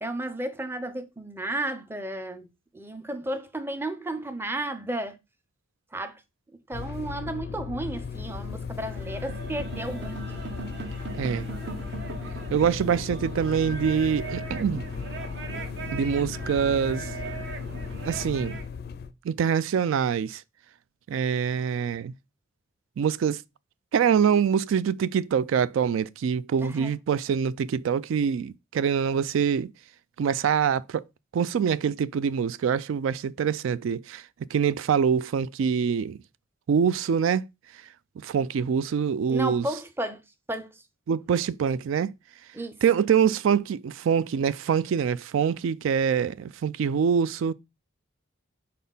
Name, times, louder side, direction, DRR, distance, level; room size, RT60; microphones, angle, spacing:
voice 1, 0.0-2.5 2.7-5.2 5.9-6.2 6.7-10.4 26.6-26.9 39.3-40.2 40.5-40.8 42.5-42.8, right 1 dB, 10° right, 0.5 m, -33 dB
sound 1, 6.7-19.1, left 6 dB, 50° left, 0.4 m, -36 dB
sound 2, 8.8-18.7, right 4 dB, 55° right, 0.8 m, -39 dB
voice 2, 12.5-14.8 15.9-17.1 18.0-18.6 19.2-20.4 21.1-22.1 23.0-23.4 23.9-29.7 30.2-31.0 31.3-34.2 34.5-36.2 36.7-37.4 38.2-39.7 41.1-42.1 42.8-47.5, right 7 dB, 70° right, 0.3 m, -25 dB
4.2 x 4.2 x 5.3 m
head